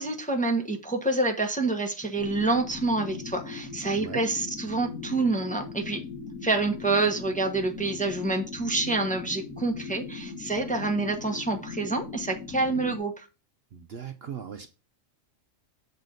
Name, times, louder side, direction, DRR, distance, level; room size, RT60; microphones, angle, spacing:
voice 1, 0.0-6.0 6.4-13.3, right 3 dB, 5° left, 0.9 m, -27 dB
sound 1, 2.2-13.0, left 5 dB, 80° left, 2.1 m, -39 dB
voice 2, 13.7-14.7, right 8 dB, 55° right, 0.9 m, -38 dB
7.4 x 4.0 x 6.4 m
omnidirectional pair, 1.4 m